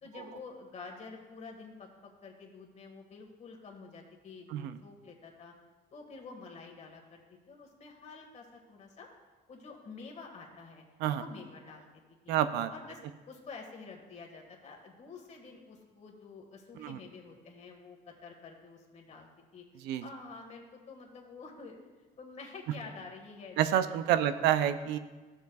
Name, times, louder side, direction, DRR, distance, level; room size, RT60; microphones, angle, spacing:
voice 1, 0.0-5.5 5.9-7.2 7.5-9.1 9.5-10.8 11.2-11.9 12.2-12.4 12.7-21.8 22.2-24.3, left 4 dB, 45° left, 1 dB, 1.6 m, -49 dB
voice 2, 12.3-12.7 16.8-17.0 19.8-20.0 23.6-25.0, right 11 dB, 90° right, 12 dB, 0.5 m, -28 dB
13.0 x 6.8 x 2.3 m, 1.3 s
cardioid pair, 110°, 17 cm